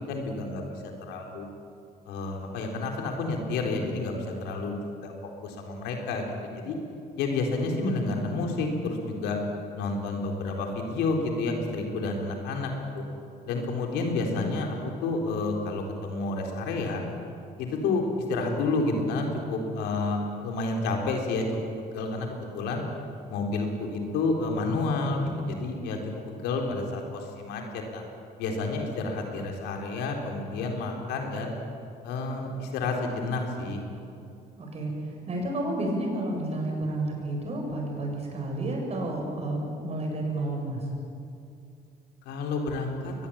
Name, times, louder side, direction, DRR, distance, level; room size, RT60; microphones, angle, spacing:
voice 1, 0.1-1.5 2.1-5.1 5.4-6.8 7.2-9.4 9.7-13.0 13.4-17.0 17.6-21.6 21.9-22.8 23.3-26.0 26.3-28.0 28.4-31.5 32.0-33.8 42.2-43.1, left 3 dB, 90° left, 2 dB, 4.1 m, -30 dB
voice 2, 34.6-40.9, right 1 dB, 40° right, 0 dB, 7.8 m, -31 dB
22.5 x 20.5 x 8.9 m, 2.5 s
cardioid pair, 110°, 17 cm